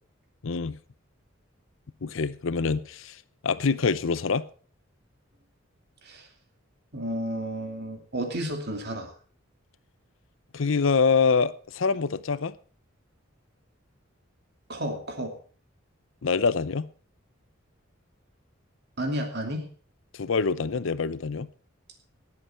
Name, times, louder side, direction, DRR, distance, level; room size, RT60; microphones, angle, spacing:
voice 1, 0.4-0.8 2.0-3.2 3.4-4.5 10.5-12.5 16.2-16.9 20.1-21.5, left 5 dB, 75° left, 0.6 m, -25 dB
voice 2, 6.9-9.1 14.7-15.3 19.0-19.7, right 1 dB, 55° right, 2.6 m, -32 dB
18.5 x 8.0 x 4.4 m
head